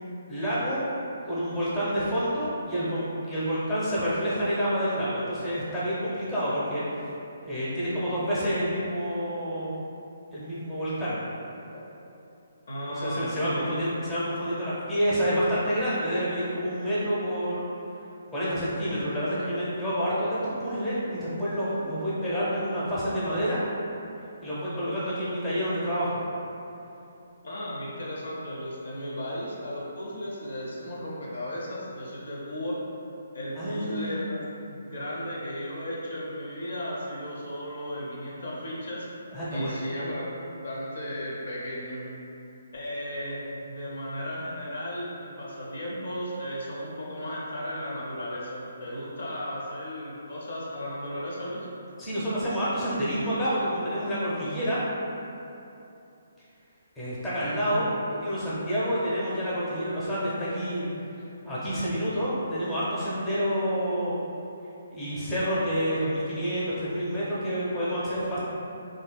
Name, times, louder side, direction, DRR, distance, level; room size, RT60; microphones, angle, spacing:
voice 1, 0.3-0.8 1.2-7.1 7.4-9.7 10.3-11.2 12.9-17.6 18.3-23.6 24.4-26.2 33.6-34.2 39.3-39.8 52.0-54.8 57.0-60.9 61.4-64.1 64.9-68.4, equal, 10° left, -11 dB, 0.8 m, -28 dB
voice 2, 12.7-13.8 27.4-32.8 33.3-34.4 34.7-39.1 39.5-40.3 40.6-42.0 42.7-51.7 57.7-57.8, equal, 65° left, -6 dB, 0.6 m, -35 dB
3.0 x 2.6 x 2.2 m, 2.8 s
figure-of-eight pair, 140°, 0 cm